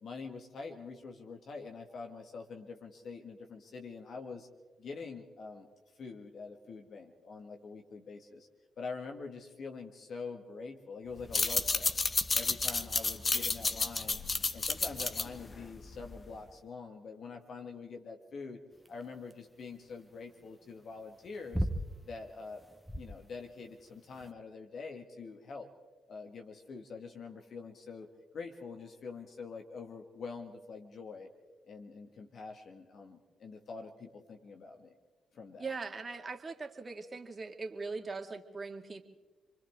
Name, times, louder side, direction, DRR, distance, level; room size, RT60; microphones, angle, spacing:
voice 1, 0.0-4.5 4.8-5.7 6.0-8.5 8.8-12.1 12.3-14.2 14.5-18.6 18.9-21.7 22.1-22.6 23.0-25.7 26.1-28.1 28.3-31.3 31.7-35.0 35.3-35.7, left 4 dB, 60° left, 4 dB, 2.0 m, -45 dB
sound 1, 11.2-16.4, left 3 dB, 35° left, 1.3 m, -31 dB
sound 2, 18.8-24.3, equal, 5° left, 1.7 m, -39 dB
voice 2, 35.6-39.0, right 4 dB, 35° right, 5 dB, 2.3 m, -40 dB
29.5 x 24.0 x 3.7 m, 1.3 s
hypercardioid pair, 45°, 0 cm